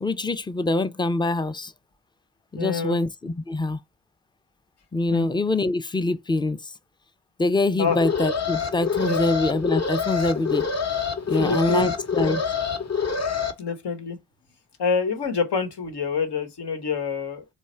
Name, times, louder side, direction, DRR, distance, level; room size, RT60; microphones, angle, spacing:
voice 1, 0.0-1.7 2.5-3.8 4.9-6.7 7.4-10.7 11.3-12.4, left 2 dB, 10° left, 0.4 m, -24 dB
voice 2, 2.5-3.0 5.1-5.3 7.8-8.0 9.0-9.3 11.3-11.9 12.2-12.5 13.6-14.2 14.8-17.4, left 5 dB, 70° left, 1.1 m, -27 dB
Alarm, 7.9-13.5, left 6 dB, 40° left, 0.9 m, -26 dB
3.1 x 2.3 x 4.2 m
cardioid pair, 50°, 42 cm